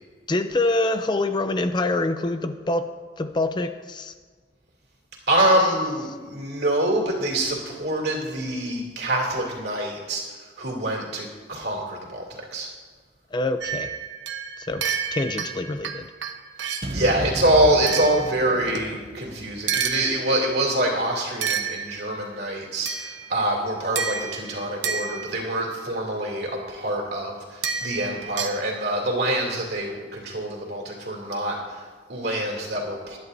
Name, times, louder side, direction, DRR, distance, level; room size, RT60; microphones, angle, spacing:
voice 1, 0.3-4.1 13.3-13.9 14.6-14.8 15.1-16.1, left 2 dB, 25° left, 9 dB, 0.4 m, -25 dB
voice 2, 5.3-12.7 16.6-33.2, right 1 dB, 60° right, -1 dB, 2.8 m, -25 dB
sound 1, 13.6-17.0 17.9-19.0 19.7-20.6 21.4-22.3 22.9-23.5 24.0-25.6 27.6-28.6, right 6 dB, 75° right, 0.9 m, -30 dB
sound 2, 16.8-21.0, right 1 dB, 30° right, 0.7 m, -35 dB
21.0 x 11.0 x 2.7 m, 1.5 s
head